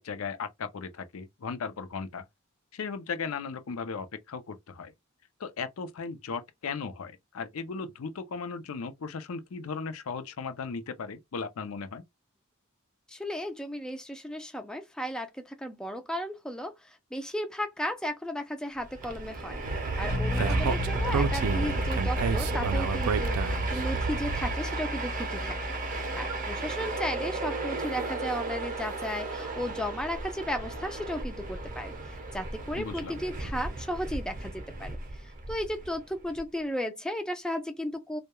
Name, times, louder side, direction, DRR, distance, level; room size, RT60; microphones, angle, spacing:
voice 1, 0.0-2.2 2.7-4.9 5.4-12.0 20.4-20.7 32.7-33.2, left 5 dB, 75° left, 0.5 m, -37 dB
voice 2, 13.1-19.6 20.0-25.8 26.1-35.0 35.5-38.2, equal, 5° left, 0.3 m, -35 dB
Train, 18.8-36.4, right 3 dB, 40° right, 0.6 m, -35 dB
Speech, 19.6-24.6, right 4 dB, 90° right, 0.4 m, -30 dB
sound 1, 20.1-33.5, left 2 dB, 55° left, 0.8 m, -36 dB
2.2 x 2.1 x 2.9 m
head